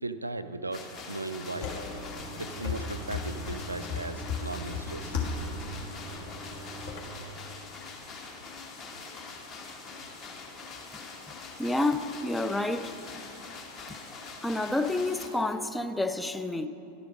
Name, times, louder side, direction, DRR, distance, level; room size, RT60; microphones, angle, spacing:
voice 1, 0.0-1.7 2.4-5.1, right 2 dB, 80° right, 0.3 m, -37 dB
sound 1, 0.7-15.3, left 4 dB, 30° left, 1.1 m, -44 dB
sound 2, 1.5-7.0, left 4 dB, 55° left, 1.4 m, -36 dB
voice 2, 11.6-12.9 13.9-14.0 14.4-16.7, left 2 dB, 5° left, 0.4 m, -29 dB
11.5 x 5.1 x 6.0 m
figure-of-eight pair, 90°, 0 cm